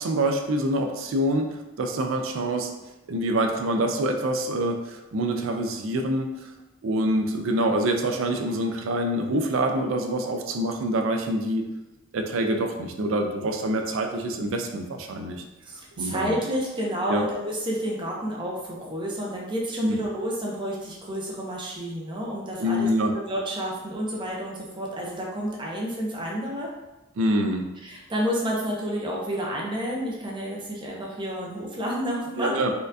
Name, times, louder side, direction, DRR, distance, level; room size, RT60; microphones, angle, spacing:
voice 1, 0.0-1.5 1.8-2.7 3.1-6.5 6.8-11.7 12.1-15.4 16.0-16.3 17.1-17.2 19.8-20.0 22.6-23.1 27.2-27.6 32.4-32.7, right 1 dB, 70° right, 4 dB, 0.4 m, -26 dB
voice 2, 15.7-26.7 27.8-32.6, equal, 25° right, -3 dB, 0.7 m, -30 dB
4.3 x 2.4 x 2.6 m, 1.0 s
head